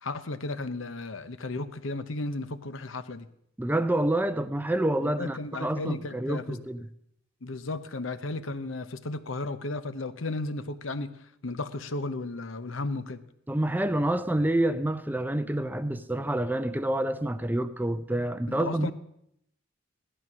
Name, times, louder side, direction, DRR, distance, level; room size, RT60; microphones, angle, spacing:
voice 1, 0.0-3.3 5.0-6.6 7.4-11.1 11.4-13.2 18.5-18.9, left 2 dB, 70° left, 0.9 m, -34 dB
voice 2, 3.6-6.9 13.5-18.9, right 1 dB, 10° right, 0.5 m, -28 dB
15.5 x 12.5 x 6.1 m
head